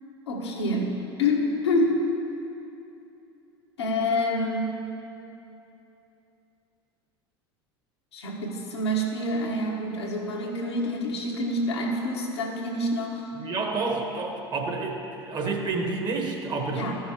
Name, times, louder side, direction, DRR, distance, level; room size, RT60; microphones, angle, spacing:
voice 1, 0.3-2.1 3.8-4.8 8.1-13.3 16.7-17.0, left 1 dB, 80° left, -2 dB, 1.3 m, -27 dB
voice 2, 13.3-16.9, right 3 dB, 30° right, 2 dB, 1.4 m, -29 dB
14.5 x 6.1 x 3.6 m, 2.9 s
figure-of-eight pair, 75°, 14 cm